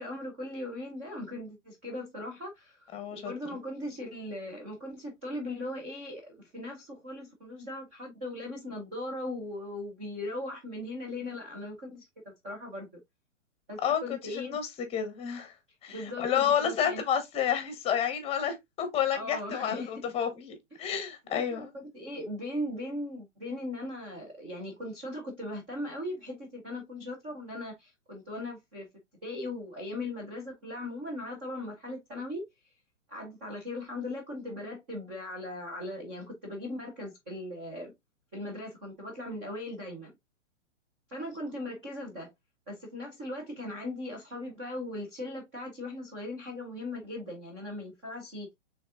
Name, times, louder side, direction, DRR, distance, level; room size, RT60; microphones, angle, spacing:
voice 1, 0.0-12.1 12.4-12.9 13.7-14.6 15.9-17.0 19.1-20.0 21.3-28.9 29.2-32.5 33.1-37.9 38.3-40.1 41.1-42.3 42.7-48.5, left 1 dB, 10° right, 0.3 m, -39 dB
voice 2, 2.9-3.3 13.8-15.6 15.8-21.7, left 8 dB, 15° left, 0.9 m, -30 dB
5.1 x 3.4 x 2.3 m
hypercardioid pair, 125°, 37 cm